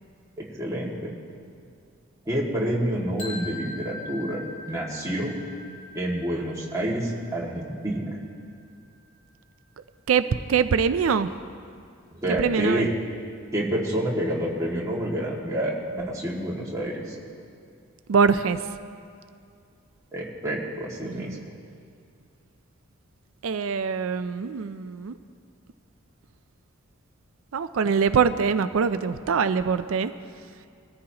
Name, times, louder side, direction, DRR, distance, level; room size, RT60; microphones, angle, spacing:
voice 1, 0.4-1.1 2.3-5.4 5.9-8.2 12.1-12.9 13.5-17.2 20.1-21.4, right 1 dB, 15° right, -5 dB, 2.0 m, -28 dB
sound 1, 3.2-9.1, left 2 dB, 80° left, 2.2 m, -42 dB
voice 2, 10.1-11.3 12.3-12.9 18.1-18.6 21.0-21.4 23.4-25.1 27.5-30.1, right 6 dB, 80° right, 12 dB, 0.4 m, -23 dB
21.5 x 14.0 x 2.9 m, 2.3 s
head